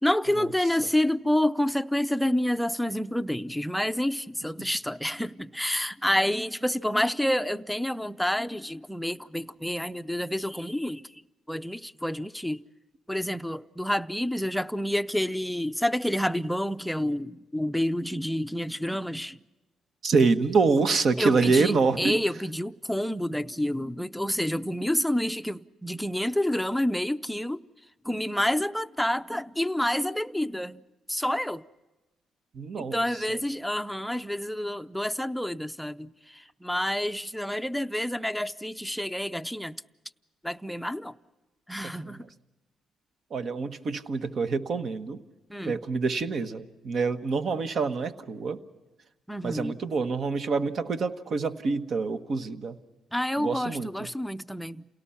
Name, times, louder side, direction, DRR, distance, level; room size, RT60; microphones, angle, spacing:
voice 1, 0.0-11.2 11.5-12.6 13.1-19.4 21.2-27.7 28.0-30.8 31.1-31.6 32.8-39.8 40.4-41.1 41.7-42.3 45.5-45.8 49.3-49.8 53.1-54.9, left 1 dB, ahead, 0.6 m, -28 dB
voice 2, 20.0-22.2 32.5-33.0 33.3-33.4 42.0-42.1 43.3-45.2 45.6-48.6 49.4-52.8 53.4-54.1, right 4 dB, 55° right, 1.3 m, -26 dB
29.0 x 18.0 x 5.8 m
cardioid pair, 90°, 0 cm